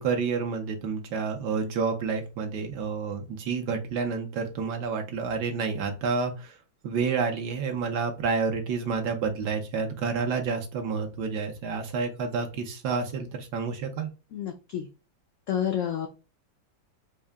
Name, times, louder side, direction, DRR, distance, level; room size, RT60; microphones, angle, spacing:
voice 1, 0.0-6.5 6.8-14.1, right 5 dB, 70° right, 4 dB, 1.4 m, -29 dB
voice 2, 14.3-14.9 15.5-16.1, left 9 dB, 85° left, 4 dB, 0.6 m, -29 dB
4.6 x 2.1 x 3.4 m, 0.31 s
omnidirectional pair, 1.9 m